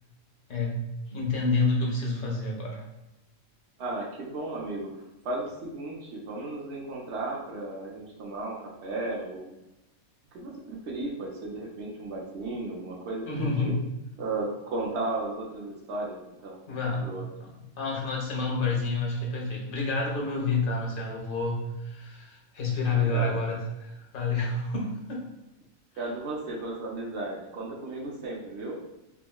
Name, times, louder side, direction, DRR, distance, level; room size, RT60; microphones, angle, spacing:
voice 1, 1.1-2.8 13.3-13.8 16.7-17.1 17.8-25.3, left 3 dB, 50° left, -2 dB, 0.7 m, -29 dB
voice 2, 3.8-4.9 5.2-9.6 10.3-13.7 14.2-17.2 22.9-23.5 26.0-28.8, right 2 dB, 65° right, -2 dB, 0.8 m, -35 dB
3.6 x 2.0 x 2.2 m, 0.94 s
omnidirectional pair, 1.5 m